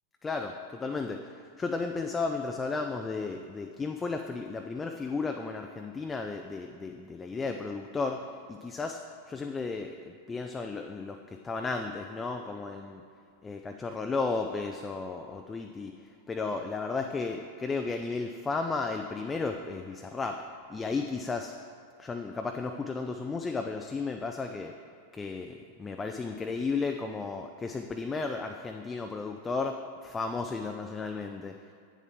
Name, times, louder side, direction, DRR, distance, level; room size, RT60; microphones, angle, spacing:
voice 1, 0.2-1.2 1.6-8.2 8.5-9.0 9.3-11.2 11.4-13.0 13.4-15.9 16.3-20.4 20.7-21.5 22.0-24.7 25.1-31.6, left 4 dB, 15° left, 5 dB, 0.4 m, -34 dB
8.4 x 6.6 x 3.7 m, 2.3 s
figure-of-eight pair, 90°, 0 cm